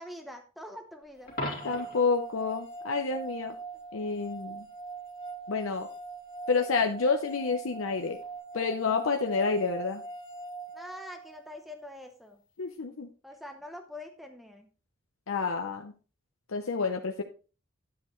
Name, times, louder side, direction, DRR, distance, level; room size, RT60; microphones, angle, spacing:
voice 1, 0.0-1.3 10.7-12.4 13.2-14.7, left 1 dB, ahead, 4 dB, 0.7 m, -44 dB
Coin (dropping), 1.3-2.1 8.2-8.4, left 1 dB, 45° left, 2.6 m, -36 dB
sound 1, 1.3-11.4, right 3 dB, 25° left, 1.6 m, -42 dB
voice 2, 1.6-3.6 3.9-4.7 5.5-5.9 6.5-8.2 8.5-10.0 12.6-13.1 15.3-15.9 16.5-17.2, left 4 dB, 80° left, 4 dB, 0.7 m, -29 dB
9.8 x 7.9 x 3.1 m, 0.35 s
head